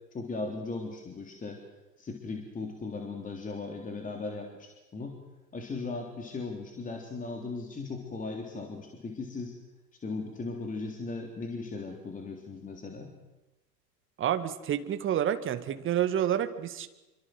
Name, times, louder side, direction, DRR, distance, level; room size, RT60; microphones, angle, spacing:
voice 1, 0.1-1.7 2.0-5.2 5.5-9.5 10.0-13.1, left 3 dB, 15° left, 3 dB, 3.6 m, -37 dB
voice 2, 14.2-16.9, right 10 dB, 25° right, 10 dB, 2.0 m, -29 dB
28.0 x 24.5 x 7.9 m, 1.0 s
figure-of-eight pair, 95°, 49 cm